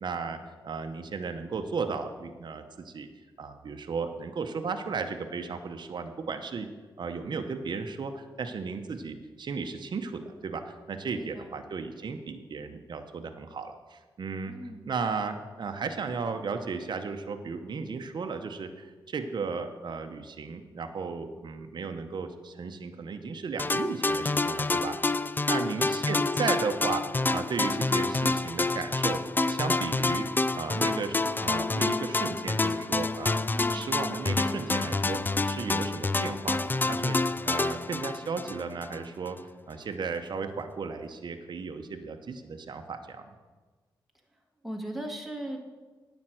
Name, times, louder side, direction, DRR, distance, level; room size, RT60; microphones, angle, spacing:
voice 1, 0.0-0.4 0.6-3.1 3.4-6.7 7.0-14.5 14.9-29.2 29.5-30.3 30.5-33.4 33.7-37.2 37.4-39.4 39.7-43.3, right 5 dB, 60° right, 6 dB, 0.9 m, -35 dB
voice 2, 11.1-11.6 14.5-14.9 25.5-25.9 33.5-33.9 44.3-45.6, right 1 dB, ahead, 1 dB, 1.9 m, -39 dB
sound 1, 23.6-39.0, left 3 dB, 20° left, 0.4 m, -28 dB
9.6 x 5.3 x 7.7 m, 1.3 s
cardioid pair, 55°, 9 cm